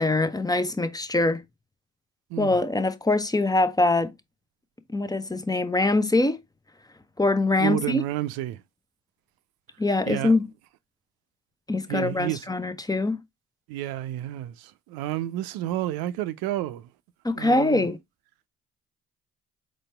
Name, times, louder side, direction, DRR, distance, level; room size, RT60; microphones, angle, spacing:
voice 1, 0.0-1.4 2.4-4.1 4.9-6.4 7.2-8.0 9.8-10.4 11.7-13.2 17.2-18.0, left 2 dB, 10° left, 0.6 m, -23 dB
voice 2, 2.3-2.6 7.6-8.6 10.0-10.4 11.9-12.5 13.7-16.9 17.3-17.9, right 14 dB, 75° right, 0.5 m, -30 dB
4.1 x 3.3 x 3.3 m
hypercardioid pair, 50°, 37 cm